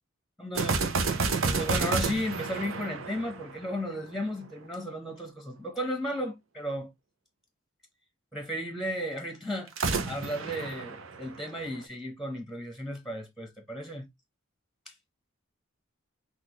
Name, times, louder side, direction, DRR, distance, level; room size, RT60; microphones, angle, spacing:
voice 1, 0.4-0.8 1.5-6.9 8.3-9.7 10.1-14.1 14.9-15.0, equal, ahead, 1.0 m, -34 dB
sound 1, 0.6-4.0 9.7-11.8, right 4 dB, 75° right, 0.9 m, -30 dB
5.9 x 2.6 x 3.1 m
head